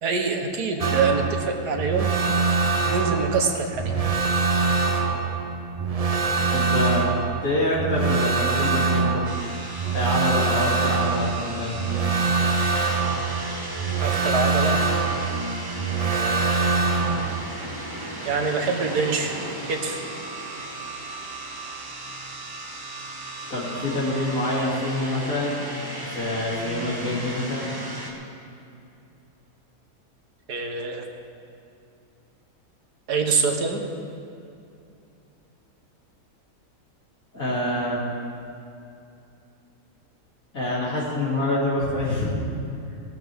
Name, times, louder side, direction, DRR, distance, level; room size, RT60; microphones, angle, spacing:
voice 1, 0.0-2.1 2.8-3.9 14.0-14.8 16.1-16.7 18.3-19.4 19.7-20.1 30.5-31.0 33.1-33.8, right 4 dB, 85° right, 4 dB, 1.7 m, -25 dB
sound 1, 0.8-17.4, right 4 dB, 50° right, 0.4 m, -24 dB
voice 2, 6.5-7.0 7.4-9.2 9.9-11.8 23.5-25.5 26.0-27.7 37.3-38.0 40.5-42.3, left 1 dB, 60° left, -8 dB, 3.2 m, -26 dB
sound 2, 9.2-28.1, right 2 dB, 15° right, 1.2 m, -35 dB
18.0 x 13.0 x 3.5 m, 2.6 s
omnidirectional pair, 1.7 m